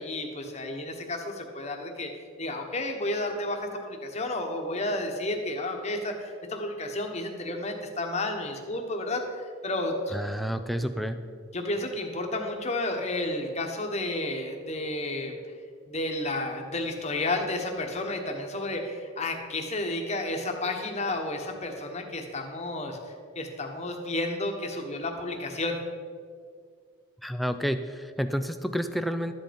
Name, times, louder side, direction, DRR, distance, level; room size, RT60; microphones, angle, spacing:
voice 1, 0.0-2.1 2.4-10.2 11.5-15.3 15.9-25.8, left 2 dB, 30° left, 3 dB, 1.2 m, -31 dB
voice 2, 10.1-11.2 27.2-29.3, equal, ahead, 9 dB, 0.4 m, -30 dB
12.5 x 7.8 x 5.2 m, 2.1 s
head